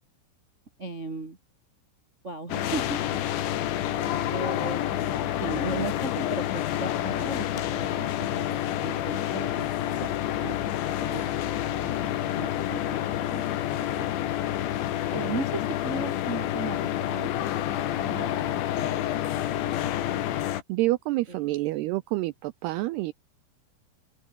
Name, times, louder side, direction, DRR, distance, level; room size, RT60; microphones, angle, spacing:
voice 1, 0.8-1.4 2.2-8.5 8.8-10.1 10.4-14.1 15.1-17.5 18.0-19.0 19.3-19.6 19.9-20.4 21.3-21.4, right 2 dB, 30° right, 1.3 m, -37 dB
sound 1, 2.5-20.6, left 12 dB, 75° left, 4.1 m, -28 dB
voice 2, 20.7-23.1, right 19 dB, 85° right, 2.3 m, -28 dB
open air
omnidirectional pair, 5.4 m